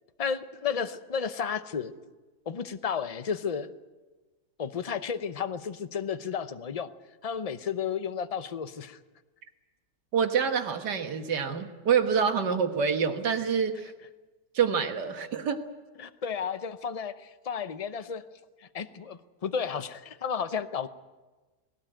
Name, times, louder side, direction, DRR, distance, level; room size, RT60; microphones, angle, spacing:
voice 1, 0.2-1.9 2.5-3.7 4.6-6.9 7.2-9.0 16.0-18.2 18.6-20.9, left 7 dB, 40° left, 11 dB, 0.5 m, -32 dB
voice 2, 10.1-13.9 14.5-15.6, right 6 dB, 85° right, 6 dB, 2.0 m, -26 dB
19.5 x 18.0 x 8.9 m, 1.2 s
omnidirectional pair, 1.8 m